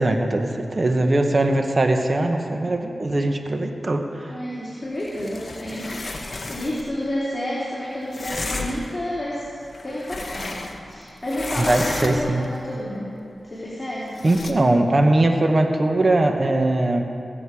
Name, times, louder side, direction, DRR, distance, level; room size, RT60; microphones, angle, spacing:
voice 1, 0.0-4.4 11.6-12.4 14.2-17.0, right 2 dB, 45° right, 4 dB, 1.4 m, -20 dB
voice 2, 4.3-9.6 9.8-13.2 13.4-14.3, left 1 dB, 30° left, -7 dB, 2.9 m, -30 dB
sound 1, 5.0-6.9 8.1-9.0 9.6-11.0 11.2-12.5 14.2-14.5, left 2 dB, 50° left, 1.3 m, -32 dB
21.0 x 7.9 x 5.0 m, 2.6 s
cardioid pair, 40°, 0 cm